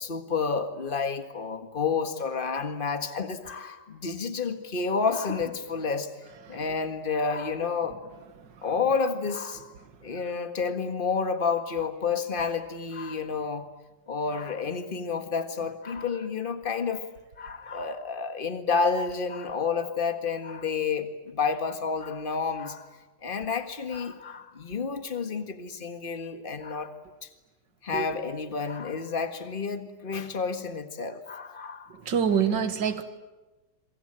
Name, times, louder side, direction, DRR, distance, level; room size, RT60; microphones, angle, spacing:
voice 1, 0.0-6.1 6.5-8.0 8.6-9.7 10.0-13.7 14.1-17.0 17.4-22.9 23.2-26.9 27.2-27.3 27.8-31.9, left 5 dB, 30° left, 8 dB, 1.8 m, -30 dB
voice 2, 31.9-33.0, right 7 dB, 80° right, 10 dB, 2.3 m, -27 dB
27.0 x 24.0 x 9.0 m, 1.1 s
omnidirectional pair, 1.9 m